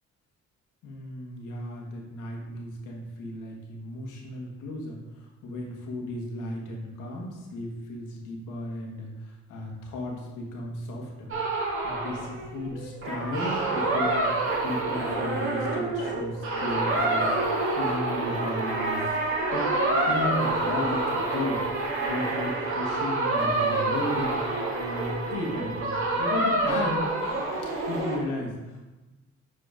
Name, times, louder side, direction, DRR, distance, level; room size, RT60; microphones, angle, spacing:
voice 1, 0.8-11.3 11.8-14.3 14.6-17.3 17.8-19.1 19.5-19.7 20.1-21.6 22.0-27.1 27.9-28.8, left 1 dB, 85° left, 0 dB, 1.8 m, -34 dB
sound 1, 11.3-28.2, right 2 dB, 45° right, 2.2 m, -27 dB
sound 2, 18.2-27.0, right 4 dB, 60° right, 1.4 m, -41 dB
7.8 x 4.5 x 5.1 m, 1.1 s
cardioid pair, 90°, 30 cm